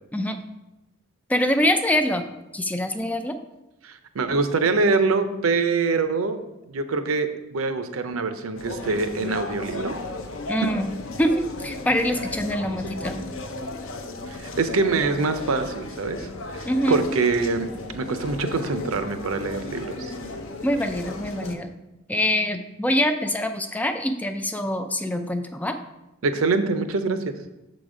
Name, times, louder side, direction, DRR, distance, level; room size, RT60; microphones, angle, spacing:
voice 1, 1.3-2.2 2.5-3.4 10.5-10.9 11.2-13.2 16.6-17.1 20.6-21.7 22.1-25.8, equal, 5° left, 7 dB, 0.4 m, -24 dB
voice 2, 3.8-6.4 6.7-9.9 14.4-16.3 16.5-20.1 26.2-27.4, right 4 dB, 90° right, 9 dB, 0.6 m, -24 dB
sound 1, 8.6-21.5, left 2 dB, 70° left, 0.7 m, -35 dB
6.7 x 4.0 x 4.9 m, 0.95 s
head